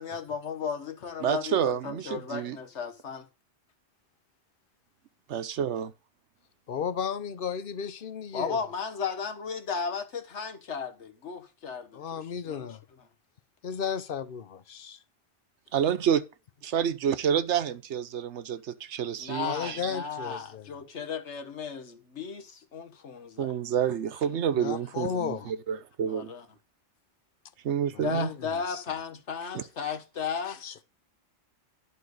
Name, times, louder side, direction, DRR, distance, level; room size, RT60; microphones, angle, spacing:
voice 1, 0.0-3.3 8.3-12.7 19.2-23.5 26.1-26.4 28.0-30.6, left 6 dB, 80° left, 1.5 m, -35 dB
voice 2, 1.2-2.6 5.3-5.9 15.7-16.2 16.6-19.9 23.4-26.3 27.6-28.3 29.5-29.6, right 8 dB, 80° right, 1.1 m, -28 dB
voice 3, 6.7-8.6 11.9-12.8 13.6-15.0 19.4-20.8 24.5-25.5 27.9-28.8 29.4-29.5 30.4-30.8, left 7 dB, 55° left, 0.8 m, -34 dB
11.0 x 4.5 x 6.4 m
omnidirectional pair, 1.2 m